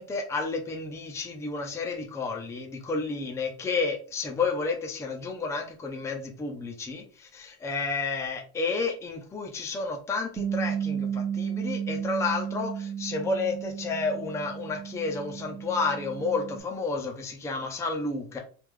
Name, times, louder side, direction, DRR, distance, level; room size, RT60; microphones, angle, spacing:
voice 1, 0.0-18.4, left 4 dB, 5° left, 1 dB, 0.4 m, -31 dB
Bass guitar, 10.4-16.6, right 8 dB, 70° right, 0.8 m, -33 dB
3.2 x 2.4 x 3.5 m, 0.40 s
cardioid pair, 135°, 42 cm